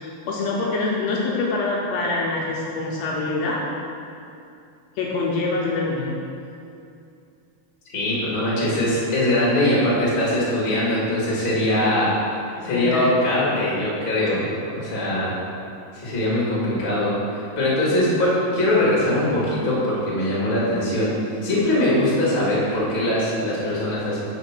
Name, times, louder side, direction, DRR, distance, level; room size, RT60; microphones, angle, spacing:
voice 1, 0.0-3.6 5.0-6.2 12.6-13.1 14.3-14.5, left 3 dB, 75° left, -3 dB, 1.7 m, -25 dB
voice 2, 7.9-12.1 12.6-14.4 14.7-15.4 15.9-24.2, left 1 dB, 30° left, -7 dB, 1.0 m, -22 dB
5.0 x 4.0 x 5.7 m, 2.5 s
omnidirectional pair, 3.3 m